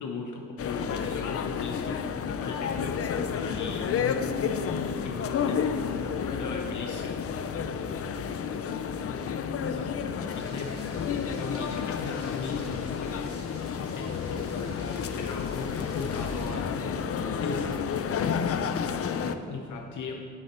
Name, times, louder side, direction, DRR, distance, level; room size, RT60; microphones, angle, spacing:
voice 1, 0.0-3.0 3.3-7.1 8.2-8.4 9.6-13.3 13.8-16.7 17.4-17.8 18.9-20.1, left 4 dB, 65° left, 1 dB, 0.9 m, -38 dB
sound 1, 0.6-19.3, left 7 dB, 45° left, 0.5 m, -31 dB
voice 2, 5.7-9.5 15.5-20.1, equal, 15° left, -10 dB, 2.7 m, -49 dB
sound 2, 10.3-16.6, right 3 dB, 80° right, 2.2 m, -52 dB
10.0 x 9.2 x 4.4 m, 2.3 s
cardioid pair, 125°, 32 cm